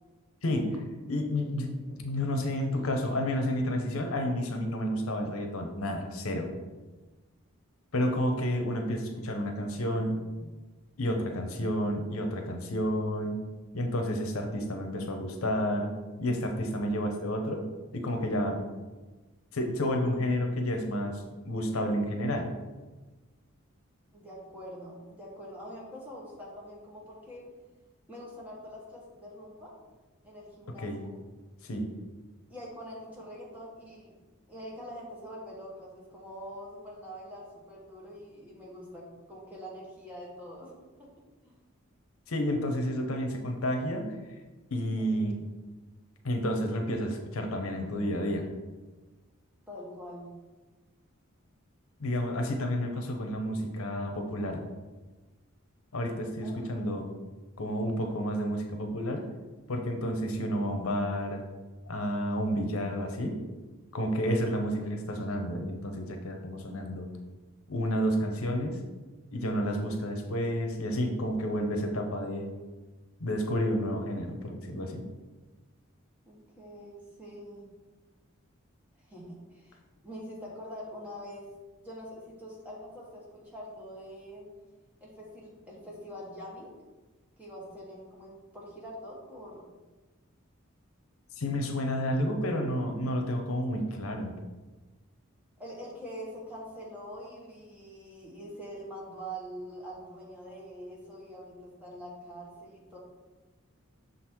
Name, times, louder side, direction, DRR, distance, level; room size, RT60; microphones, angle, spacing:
voice 1, 0.4-1.7 2.0-6.5 7.9-10.5 11.0-13.4 13.7-15.9 16.2-17.6 17.9-18.6 19.5-22.5 30.8-31.0 31.6-31.9 42.3-44.1 44.7-45.4 46.2-48.5 52.0-54.6 55.9-57.1 57.6-59.2 59.7-61.4 61.9-63.4 63.9-67.1 67.7-68.8 69.3-72.5 73.2-75.0 91.4-94.3, equal, 80° left, 4 dB, 0.8 m, -30 dB
voice 2, 24.1-27.4 28.1-29.7 30.2-31.1 32.5-34.1 34.5-40.7 41.0-41.1 41.4-41.6 44.9-45.4 49.7-50.3 56.4-57.1 76.3-77.7 79.0-81.5 81.8-84.5 85.0-86.7 87.4-89.7 95.6-103.0, equal, 5° right, -5 dB, 1.4 m, -44 dB
6.2 x 4.0 x 4.5 m, 1.2 s
head